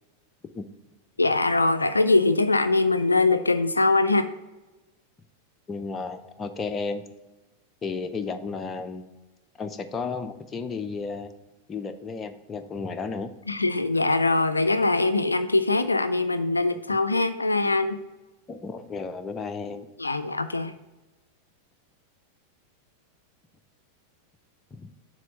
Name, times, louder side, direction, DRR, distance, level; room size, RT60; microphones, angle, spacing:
voice 1, 1.2-4.3 13.5-18.0 20.0-20.7, left 2 dB, 80° left, 11 dB, 0.3 m, -22 dB
voice 2, 5.7-7.0 7.8-9.1 9.6-11.3 11.7-13.3 18.5-19.9 24.7-24.9, left 4 dB, 20° left, 8 dB, 0.5 m, -33 dB
7.4 x 3.2 x 5.3 m, 1.1 s
figure-of-eight pair, 90°, 0 cm